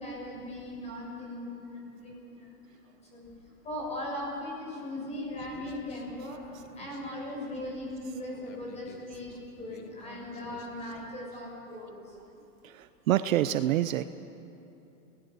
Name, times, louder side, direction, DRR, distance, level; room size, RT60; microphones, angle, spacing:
voice 1, 0.0-2.6 3.1-3.3 3.6-6.4 6.8-9.3 9.6-12.0, left 1 dB, 15° left, -2 dB, 6.5 m, -38 dB
Human voice, 5.4-11.4, left 5 dB, 45° left, 2.3 m, -53 dB
voice 2, 12.6-14.0, right 13 dB, 55° right, 13 dB, 0.7 m, -27 dB
28.5 x 19.0 x 6.8 m, 2.9 s
hypercardioid pair, 155°, 48 cm